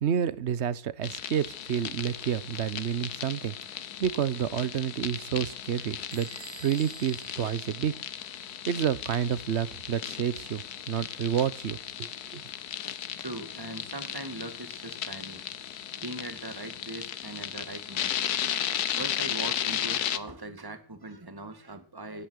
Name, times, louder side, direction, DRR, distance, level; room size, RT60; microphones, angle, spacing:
voice 1, 0.0-3.5 4.0-6.3 6.6-7.9 8.7-12.4, right 9 dB, 50° right, 18 dB, 1.0 m, -29 dB
sound 1, 1.0-20.2, left 10 dB, 80° left, 1.4 m, -35 dB
Bell / Door, 6.1-8.6, right 7 dB, 85° right, 1.7 m, -50 dB
voice 2, 13.2-15.4 16.0-18.2 18.9-22.3, right 2 dB, 15° right, 8 dB, 1.9 m, -40 dB
17.0 x 10.5 x 6.4 m, 0.43 s
omnidirectional pair, 1.7 m